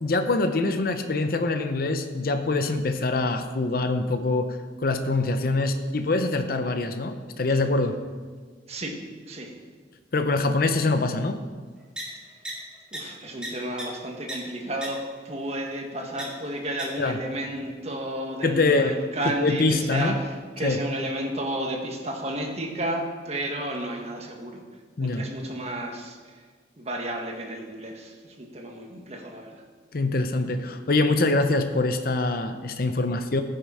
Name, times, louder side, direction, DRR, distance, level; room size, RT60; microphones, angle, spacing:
voice 1, 0.0-8.0 10.1-11.4 17.0-17.2 18.4-19.0 19.4-20.1 20.6-20.8 25.0-25.3 29.9-33.4, left 2 dB, 55° left, 7 dB, 0.7 m, -24 dB
voice 2, 8.7-9.0 9.3-9.5 12.9-24.6 25.0-26.4 26.8-29.6, right 1 dB, 35° right, 2 dB, 1.5 m, -32 dB
sound 1, 12.0-12.1 12.4-12.5 12.9-13.0 13.4-13.5 13.8-13.9 14.3-14.4 14.8-14.9 16.2-16.3 16.8-16.9, right 1 dB, 5° right, 2.1 m, -33 dB
15.5 x 6.5 x 4.9 m, 1.5 s
head